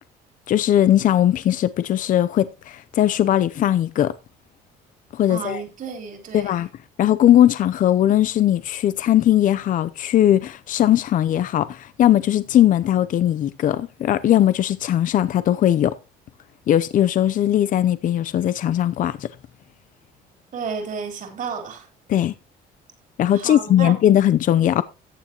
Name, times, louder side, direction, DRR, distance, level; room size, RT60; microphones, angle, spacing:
voice 1, 0.5-4.1 5.1-5.6 6.3-6.7 7.0-15.9 16.7-19.3 22.1-22.3 23.2-24.8, left 11 dB, 50° left, 0.6 m, -19 dB
voice 2, 5.3-6.5 20.5-21.9 23.3-23.9, right 6 dB, 50° right, 3.8 m, -32 dB
14.5 x 8.9 x 2.9 m
cardioid pair, 110°, 17 cm